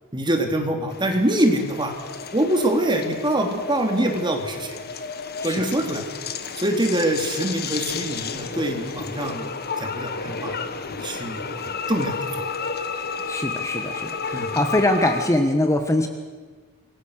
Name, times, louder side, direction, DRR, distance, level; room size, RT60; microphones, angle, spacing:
voice 1, 0.1-1.9 2.3-4.8 5.4-6.0 6.6-9.5 9.8-10.6 10.9-11.6 11.9-12.4 14.3-14.5, right 1 dB, 20° right, 4 dB, 2.9 m, -24 dB
sound 1, 0.9-15.3, left 5 dB, 45° left, 1.4 m, -32 dB
voice 2, 13.3-16.1, left 1 dB, 15° left, 5 dB, 1.4 m, -22 dB
26.5 x 22.0 x 6.5 m, 1.4 s
head